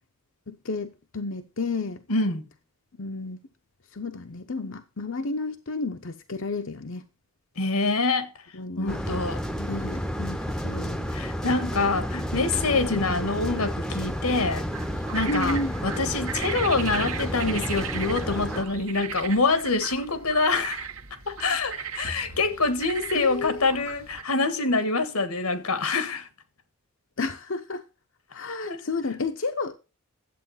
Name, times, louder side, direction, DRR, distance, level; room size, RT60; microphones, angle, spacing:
voice 1, 0.5-2.0 3.0-3.4 3.9-7.1 8.5-9.0 9.6-11.1 12.9-13.3 15.3-15.8 23.1-23.7 27.2-27.8 28.3-29.8, left 3 dB, 60° left, 0.8 m, -32 dB
voice 2, 2.1-2.4 7.6-8.3 8.8-9.4 11.1-14.7 15.1-20.9 21.3-26.3 28.6-28.8, left 3 dB, 85° left, 1.6 m, -25 dB
sound 1, 8.9-18.6, equal, 5° left, 0.7 m, -31 dB
sound 2, 14.7-24.2, right 7 dB, 70° right, 1.5 m, -37 dB
11.0 x 8.1 x 5.6 m
head